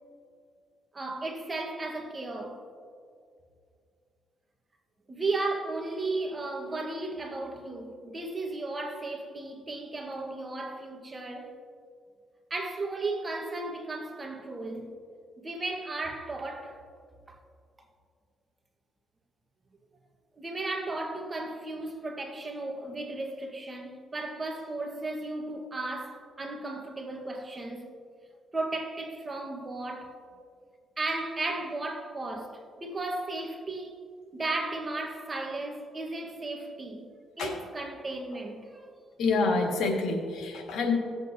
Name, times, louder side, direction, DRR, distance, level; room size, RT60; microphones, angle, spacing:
voice 1, 0.9-2.6 5.1-11.6 12.5-14.9 15.4-16.8 17.3-17.4 20.4-27.9 28.5-30.2 31.0-37.1 37.4-38.9, right 2 dB, 25° right, 1.4 m, -35 dB
voice 2, 39.2-40.9, left 3 dB, 75° left, 1.7 m, -27 dB
17.0 x 8.0 x 2.7 m
cardioid pair, 90°, 0 cm